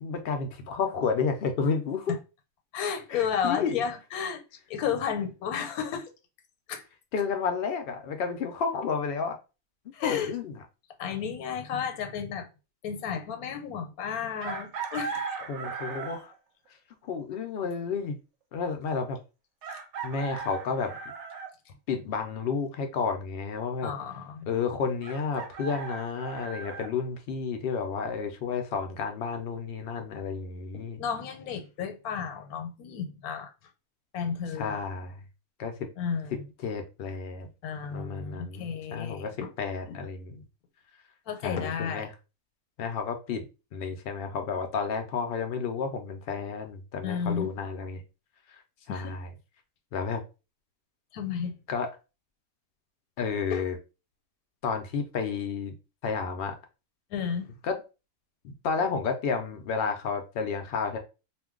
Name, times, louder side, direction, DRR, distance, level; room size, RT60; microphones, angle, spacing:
voice 1, 0.0-2.1 3.1-3.8 7.1-9.4 10.0-10.5 15.5-16.3 17.0-18.2 18.5-19.2 20.0-20.9 21.9-23.9 24.5-31.0 34.6-35.2 35.6-35.9 36.3-37.5 37.9-40.4 41.4-42.1 42.8-48.0 48.9-49.3 49.9-50.2 51.7-51.9 53.2-53.8 54.6-55.7 56.0-56.6 57.6-57.8 58.4-61.0, left 5 dB, 65° left, 0.6 m, -31 dB
voice 2, 2.7-4.4 4.7-6.1 6.7-6.8 9.9-10.3 11.0-12.5 12.8-15.2 23.8-24.5 30.7-33.5 34.1-34.8 36.0-36.4 37.6-39.5 39.8-40.0 41.3-42.1 47.0-47.5 48.9-49.2 51.1-51.5 53.5-53.6 57.1-57.5, left 7 dB, 85° left, 1.1 m, -32 dB
Chicken rooster, 14.4-16.4 18.0-18.1 19.6-21.5 25.0-26.9, right 5 dB, 65° right, 0.8 m, -37 dB
2.5 x 2.2 x 3.6 m
omnidirectional pair, 1.5 m